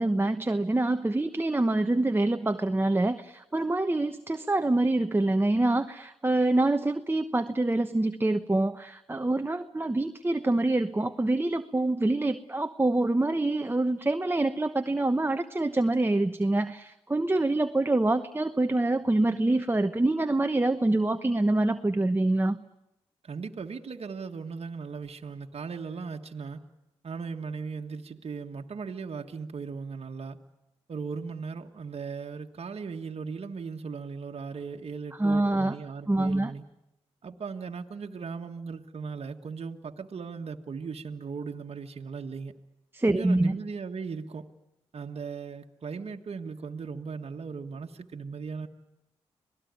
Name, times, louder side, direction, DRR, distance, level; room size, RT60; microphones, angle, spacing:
voice 1, 0.0-22.6 35.1-35.8 36.1-36.5 42.9-43.6, right 2 dB, 20° right, 8 dB, 1.0 m, -26 dB
voice 2, 23.2-26.6 27.0-30.4 30.9-36.6 37.2-42.5 43.1-44.5 44.9-48.7, right 5 dB, 60° right, 3 dB, 1.5 m, -37 dB
26.0 x 18.5 x 9.5 m, 0.89 s
supercardioid pair, 50°, 12 cm